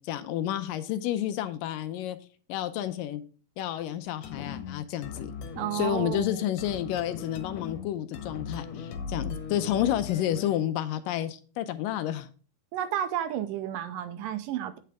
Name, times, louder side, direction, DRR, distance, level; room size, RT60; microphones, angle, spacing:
voice 1, 0.0-2.2 2.5-3.2 3.6-5.3 5.7-12.3, left 11 dB, 80° left, 2.2 m, -30 dB
sound 1, 4.2-10.7, left 5 dB, 60° left, 2.2 m, -39 dB
voice 2, 5.5-6.3 12.7-14.8, right 11 dB, 75° right, 2.2 m, -31 dB
8.5 x 7.7 x 3.4 m
omnidirectional pair, 4.1 m